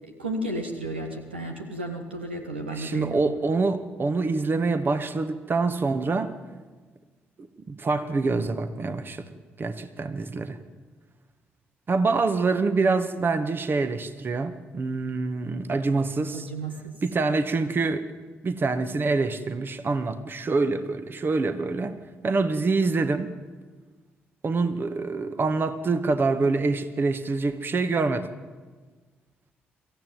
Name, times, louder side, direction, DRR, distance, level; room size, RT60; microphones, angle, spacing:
voice 1, 0.0-3.2 16.3-17.0, right 1 dB, 90° right, 4 dB, 1.5 m, -33 dB
voice 2, 2.8-6.3 7.7-9.3 9.6-10.6 11.9-16.5 17.0-18.0 18.4-22.0 22.2-23.3 24.4-28.3, right 3 dB, 40° right, 10 dB, 1.7 m, -25 dB
23.0 x 15.5 x 9.3 m, 1.4 s
figure-of-eight pair, 40°, 6 cm